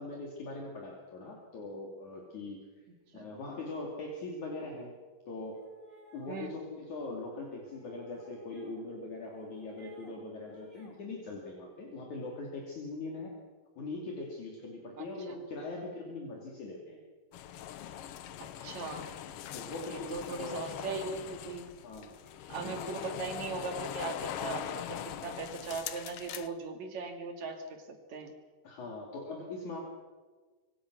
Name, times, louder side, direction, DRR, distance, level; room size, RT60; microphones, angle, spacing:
voice 1, 0.0-2.8 3.1-4.9 5.3-5.6 6.1-13.3 13.8-17.0 19.5-20.7 21.8-22.2 22.6-23.1 28.6-29.8, left 2 dB, 60° left, -1 dB, 4.2 m, -41 dB
sound 1, 5.5-6.6 7.6-8.9 9.3-10.2 10.5-11.0, equal, 15° right, 5.9 m, -57 dB
voice 2, 15.0-15.4 18.6-19.1 19.8-21.7 22.5-28.3, right 4 dB, 55° right, 5 dB, 3.7 m, -39 dB
sound 2, 17.3-26.5, left 10 dB, 90° left, 1.3 m, -41 dB
26.5 x 23.5 x 6.3 m, 1.4 s
omnidirectional pair, 4.0 m